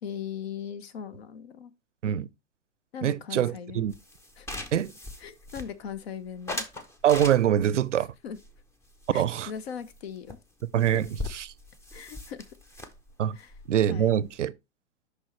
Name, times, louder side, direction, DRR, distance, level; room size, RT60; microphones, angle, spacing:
voice 1, 0.0-1.7 2.9-3.8 4.4-4.5 5.2-6.7 8.2-8.4 9.1-10.4 11.9-12.5 13.3-13.5 13.9-14.2, left 8 dB, 60° left, 0.9 m, -39 dB
voice 2, 3.0-3.9 4.7-4.9 7.0-8.1 9.1-9.5 10.7-11.5 13.2-13.4 13.7-14.5, right 10 dB, 85° right, 0.5 m, -24 dB
sound 1, 3.9-6.0 6.5-7.8 8.3-9.6 9.9-10.0 10.3-10.4 10.6-14.5, left 2 dB, 10° left, 0.6 m, -40 dB
6.3 x 5.5 x 3.1 m
hypercardioid pair, 110°, 35 cm